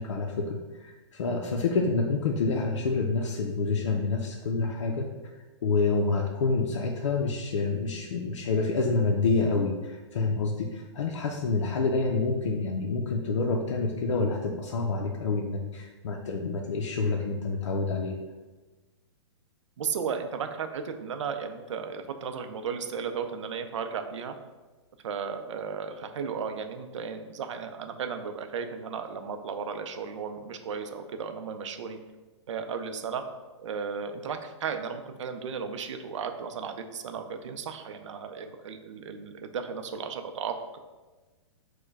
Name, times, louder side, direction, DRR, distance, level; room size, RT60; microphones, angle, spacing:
voice 1, 0.0-5.1 5.6-18.2, left 3 dB, 85° left, 0 dB, 0.5 m, -28 dB
voice 2, 19.8-24.3 25.0-32.0 32.5-33.2 33.6-40.8, right 6 dB, 80° right, 7 dB, 0.5 m, -35 dB
4.6 x 2.2 x 4.5 m, 1.2 s
hypercardioid pair, 150°, 15 cm